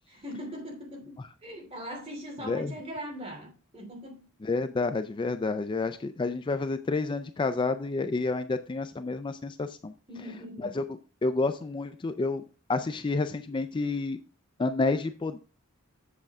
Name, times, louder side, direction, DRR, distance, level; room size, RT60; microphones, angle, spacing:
voice 1, 0.1-4.2 10.1-10.8, equal, 30° right, 2.8 m, -41 dB
voice 2, 4.4-9.9 10.6-10.8 11.2-12.4 12.7-14.2 14.6-15.4, left 3 dB, 25° left, 0.4 m, -29 dB
7.7 x 7.2 x 3.5 m
head